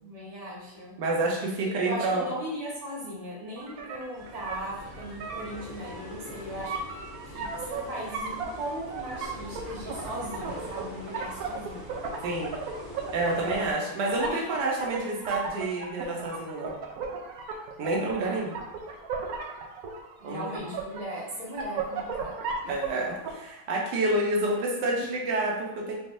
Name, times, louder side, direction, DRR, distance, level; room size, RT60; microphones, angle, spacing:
voice 1, 0.0-1.0 1.8-6.7 7.3-11.9 13.4-13.7 14.2-14.4 18.2-18.4 20.2-22.4 22.6-22.7, right 1 dB, 25° right, -6 dB, 1.1 m, -38 dB
voice 2, 1.0-2.3 12.2-12.6 13.1-16.7 17.8-18.6 20.2-20.7 22.7-26.0, right 2 dB, 90° right, -1 dB, 1.4 m, -28 dB
sound 1, 3.6-23.3, right 5 dB, 70° right, 1.0 m, -36 dB
sound 2, 4.1-13.7, left 1 dB, 15° left, 1.3 m, -44 dB
4.1 x 3.4 x 2.6 m, 0.94 s
omnidirectional pair, 1.8 m